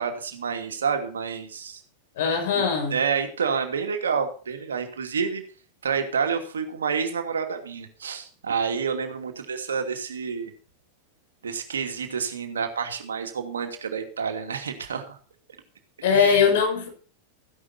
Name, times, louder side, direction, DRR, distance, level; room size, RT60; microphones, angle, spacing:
voice 1, 0.0-1.8 2.5-5.4 5.8-10.5 11.4-15.2 16.1-16.4, right 6 dB, 70° right, 2.7 m, -29 dB
voice 2, 2.2-3.0 16.0-16.9, left 6 dB, 55° left, 6.3 m, -21 dB
15.0 x 11.0 x 4.3 m
figure-of-eight pair, 90°, 0 cm